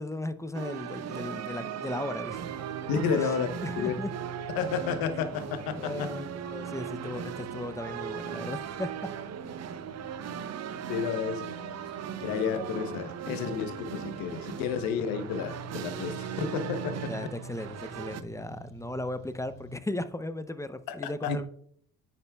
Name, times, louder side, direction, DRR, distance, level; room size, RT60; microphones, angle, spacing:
voice 1, 0.0-2.4 3.2-3.3 3.6-4.1 5.7-9.1 17.1-21.5, left 1 dB, 10° left, 0.6 m, -36 dB
sound 1, 0.5-18.2, right 9 dB, 50° right, 0.6 m, -38 dB
sound 2, 2.2-19.8, right 1 dB, 55° left, 2.8 m, -47 dB
voice 2, 2.9-3.5 3.8-3.9 4.5-6.1 10.9-11.5 12.2-17.1 20.9-21.4, left 6 dB, 80° left, 1.0 m, -31 dB
9.8 x 7.2 x 2.3 m
supercardioid pair, 70°, 35 cm